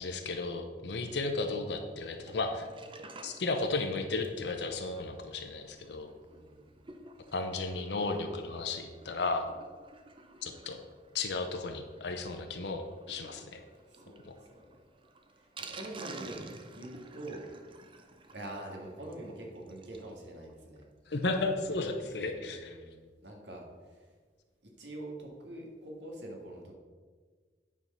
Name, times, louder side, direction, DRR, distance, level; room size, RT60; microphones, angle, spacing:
voice 1, 0.0-2.7 3.2-6.1 7.3-9.5 10.4-10.8 11.1-13.6 14.2-14.3 21.1-22.8, left 3 dB, 70° left, 5 dB, 0.8 m, -34 dB
Sink (filling or washing), 2.1-20.1 20.5-20.6 20.8-20.9 21.2-21.3, right 3 dB, 30° right, 0.6 m, -52 dB
voice 2, 6.3-6.6 13.8-14.7 15.4-16.4 16.7-17.5 18.3-20.9 21.8-21.9 22.2-24.1 24.8-26.7, right 1 dB, 80° right, 0 dB, 1.9 m, -45 dB
9.5 x 4.7 x 5.5 m, 1.5 s
head